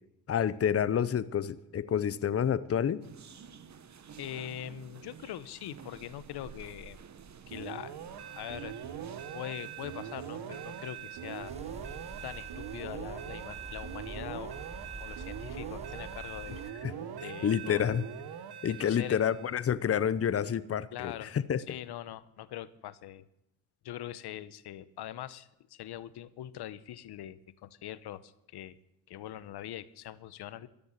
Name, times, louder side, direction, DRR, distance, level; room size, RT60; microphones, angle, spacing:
voice 1, 0.3-3.0 16.8-16.9 17.4-18.0 18.6-21.6, left 8 dB, 35° left, 17 dB, 0.7 m, -28 dB
sound 1, 3.0-12.5, right 7 dB, 40° right, 1.2 m, -52 dB
voice 2, 4.2-7.0 7.5-8.0 8.3-8.8 9.3-11.5 12.2-14.6 15.0-16.6 17.2-17.8 18.7-19.2 20.9-21.3 21.7-23.3 23.8-28.8 29.1-30.7, left 12 dB, 70° left, 16 dB, 0.9 m, -42 dB
sound 2, 7.5-19.6, right 9 dB, 65° right, 1.4 m, -42 dB
sound 3, 11.4-16.7, right 2 dB, 15° right, 0.9 m, -46 dB
13.5 x 7.0 x 10.0 m, 0.85 s
supercardioid pair, 75°, 41 cm